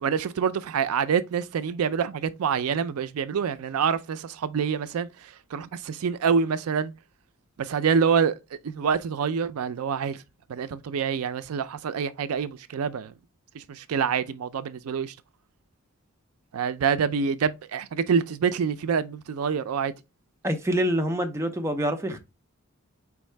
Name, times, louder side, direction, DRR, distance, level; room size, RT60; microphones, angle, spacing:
voice 1, 0.0-6.9 7.6-8.4 8.6-10.2 10.5-13.1 13.5-15.1 16.5-19.9, right 6 dB, 75° right, 0.4 m, -26 dB
voice 2, 20.4-22.2, equal, 15° right, 0.5 m, -26 dB
4.5 x 3.6 x 3.2 m
head